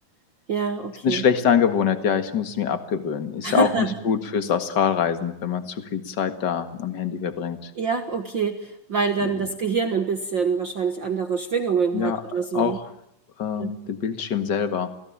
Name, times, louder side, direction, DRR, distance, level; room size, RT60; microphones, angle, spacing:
voice 1, 0.5-1.2 3.4-4.0 7.8-12.8 13.6-13.7, right 5 dB, 50° right, 7 dB, 1.4 m, -25 dB
voice 2, 1.0-7.7 9.2-9.3 11.9-12.9 13.4-14.9, left 7 dB, 40° left, 9 dB, 1.7 m, -24 dB
28.5 x 17.5 x 8.8 m, 0.78 s
omnidirectional pair, 4.1 m